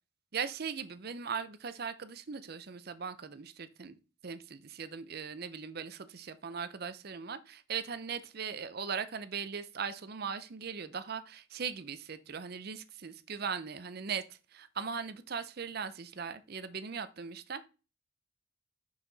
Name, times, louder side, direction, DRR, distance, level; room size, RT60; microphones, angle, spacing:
voice 1, 0.3-4.0 4.2-14.2 14.5-17.7, right 6 dB, 50° right, 12 dB, 0.6 m, -39 dB
5.7 x 4.9 x 4.0 m, 0.32 s
head